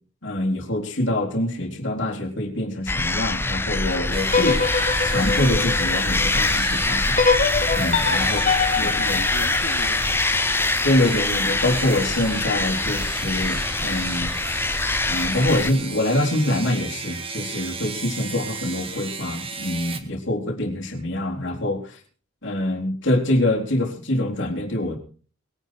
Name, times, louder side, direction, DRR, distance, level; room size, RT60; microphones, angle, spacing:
voice 1, 0.2-4.6 5.0-7.2 7.7-8.4 8.8-9.2 10.8-14.3 15.1-22.0 22.4-25.0, left 1 dB, 55° left, 0 dB, 3.9 m, -25 dB
sound 1, 2.9-15.7, left 2 dB, 10° left, 0.6 m, -24 dB
sound 2, 4.1-20.0, right 5 dB, 25° right, 1.8 m, -35 dB
sound 3, 4.3-6.4 7.2-10.3, left 5 dB, 35° left, 1.4 m, -24 dB
voice 2, 8.2-11.1, left 2 dB, 85° left, 0 dB, 3.0 m, -38 dB
21.5 x 10.0 x 4.7 m, 0.41 s
head